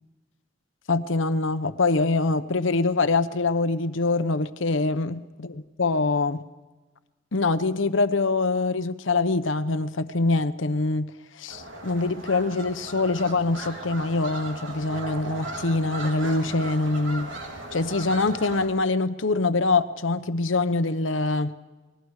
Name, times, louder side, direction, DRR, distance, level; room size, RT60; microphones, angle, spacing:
voice 1, 0.9-6.4 7.3-11.1 11.4-17.3 17.7-21.5, left 3 dB, 90° left, 11 dB, 1.0 m, -24 dB
sound 1, 11.5-18.7, right 2 dB, 85° right, 3.3 m, -37 dB
27.5 x 20.0 x 4.9 m, 1.2 s
head